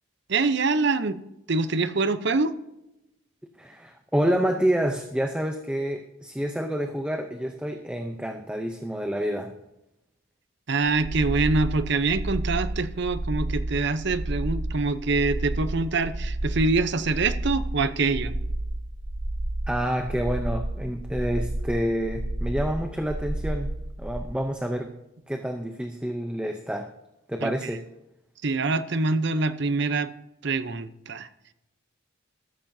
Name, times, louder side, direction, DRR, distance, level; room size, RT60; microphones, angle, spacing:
voice 1, 0.3-1.2 1.5-2.5 10.7-18.3 27.4-27.5 28.4-30.1 30.4-31.3, right 3 dB, 55° right, 12 dB, 0.7 m, -25 dB
voice 2, 3.6-9.5 19.7-24.9 25.3-26.9 27.3-27.8, equal, 5° right, 5 dB, 0.6 m, -28 dB
sound 1, 11.0-24.2, right 1 dB, 85° right, 3.5 m, -31 dB
13.5 x 13.5 x 2.7 m, 0.89 s
head